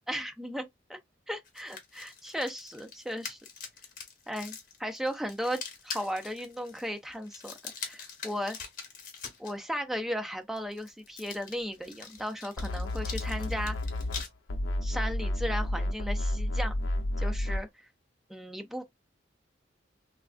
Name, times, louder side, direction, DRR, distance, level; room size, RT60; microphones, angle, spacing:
voice 1, 0.1-1.0 1.3-3.4 4.3-8.6 9.4-13.8 14.8-16.7 17.2-17.7 18.3-18.8, equal, ahead, 0.3 m, -36 dB
sound 1, 1.4-9.5 10.6-14.3, left 5 dB, 45° left, 0.9 m, -44 dB
sound 2, 12.6-14.2 14.5-17.6, left 1 dB, 85° left, 0.6 m, -31 dB
3.3 x 2.4 x 2.2 m
head